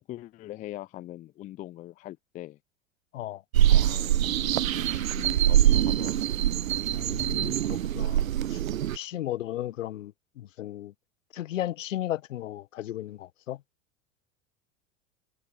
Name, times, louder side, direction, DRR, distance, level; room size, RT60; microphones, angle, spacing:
voice 1, 0.0-2.6 3.6-6.3, left 15 dB, 20° left, 0.4 m, -43 dB
sound 1, 3.5-9.0, right 11 dB, 75° right, 0.6 m, -24 dB
voice 2, 6.9-8.6 8.9-10.9 11.3-13.6, left 13 dB, 65° left, 1.0 m, -35 dB
figure-of-eight pair, 85°, 41 cm